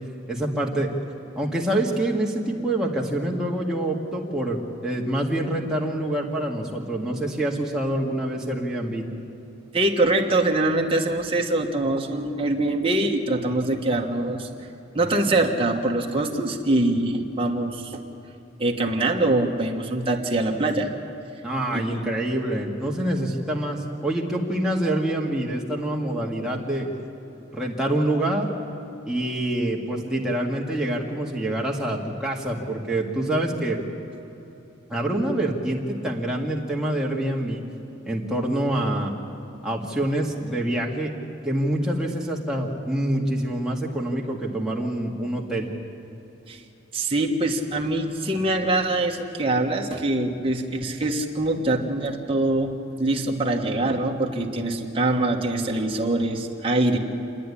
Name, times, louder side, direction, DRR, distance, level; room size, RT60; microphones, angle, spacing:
voice 1, 0.3-0.9 1.4-4.6 4.8-9.0 21.4-26.9 27.5-28.5 29.0-33.8 34.9-37.6 38.0-39.1 39.6-41.1 41.4-45.7, right 1 dB, 5° right, -3 dB, 2.1 m, -26 dB
voice 2, 9.7-14.7 14.9-18.0 18.6-20.9 21.7-22.1 46.5-46.6 46.9-57.0, right 2 dB, 25° right, 1 dB, 1.5 m, -24 dB
28.5 x 10.5 x 10.0 m, 3.0 s
head